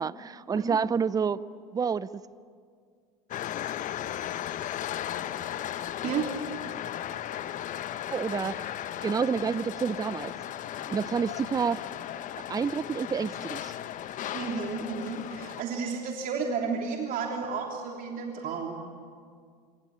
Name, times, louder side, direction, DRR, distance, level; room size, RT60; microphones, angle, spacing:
voice 1, 0.0-1.4 1.7-2.1 8.1-8.7 9.0-10.3 10.9-11.8 12.5-13.7, right 6 dB, 20° right, 18 dB, 0.7 m, -28 dB
sound 1, 3.3-15.6, left 11 dB, 40° left, 1.0 m, -36 dB
voice 2, 14.3-18.8, right 5 dB, 45° right, 1 dB, 3.3 m, -32 dB
26.5 x 25.0 x 8.7 m, 2.1 s
hypercardioid pair, 85°, 20 cm